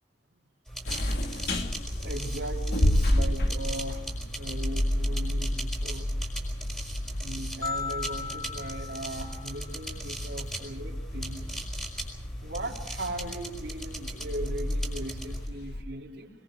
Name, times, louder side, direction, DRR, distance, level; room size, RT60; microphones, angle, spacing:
sound 1, 0.7-15.5, right 1 dB, 5° left, 5.1 m, -40 dB
sound 2, 0.9-15.8, left 1 dB, 60° left, 1.8 m, -31 dB
voice 1, 1.9-4.1 4.4-6.1 7.1-11.6 12.4-16.3, right 1 dB, 75° right, -1 dB, 3.8 m, -38 dB
sound 3, 7.6-10.0, left 5 dB, 20° left, 2.7 m, -37 dB
22.5 x 21.5 x 6.3 m, 0.85 s
head